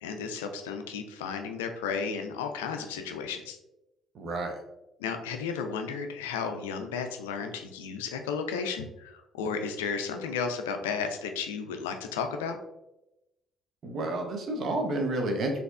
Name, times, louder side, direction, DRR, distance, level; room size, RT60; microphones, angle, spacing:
voice 1, 0.0-3.6 5.0-12.6, left 6 dB, 75° left, 6 dB, 0.3 m, -33 dB
voice 2, 4.1-4.6 13.8-15.6, right 2 dB, 50° right, 3 dB, 0.7 m, -30 dB
4.2 x 2.7 x 2.3 m, 0.91 s
figure-of-eight pair, 45°, 0 cm